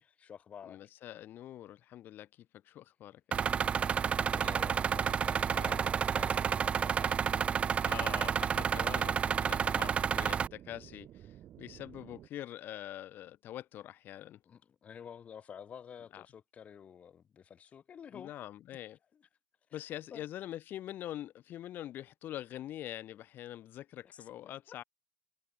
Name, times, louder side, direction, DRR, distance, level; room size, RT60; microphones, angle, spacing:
voice 1, 0.0-0.8 4.2-7.7 9.0-9.1 9.7-9.8 14.5-18.3 19.1-19.2 19.7-19.8 20.1-20.2 24.1-24.2 24.4-24.9, left 8 dB, 30° left, 5.8 m, -51 dB
voice 2, 0.6-2.3 2.6-3.6 5.5-5.8 7.8-14.4 16.1-16.3 18.1-19.0 19.7-24.8, left 12 dB, 45° left, 1.6 m, -44 dB
sound 1, 3.3-10.5, right 7 dB, 25° right, 0.8 m, -30 dB
sound 2, 4.7-12.3, right 12 dB, 45° right, 3.9 m, -53 dB
cardioid pair, 170°, 5 cm